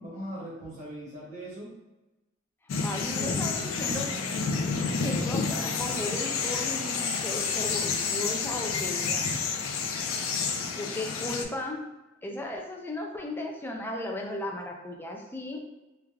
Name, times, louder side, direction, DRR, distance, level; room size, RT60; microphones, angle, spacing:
voice 1, 0.0-1.7 3.2-3.5, right 1 dB, 40° right, -8 dB, 0.8 m, -40 dB
sound 1, 2.7-11.4, left 5 dB, 80° left, 0.4 m, -29 dB
voice 2, 2.8-4.1 4.8-9.3 10.7-11.9 12.2-15.6, left 1 dB, 10° left, 1 dB, 0.3 m, -36 dB
3.2 x 2.4 x 2.2 m, 1.0 s
head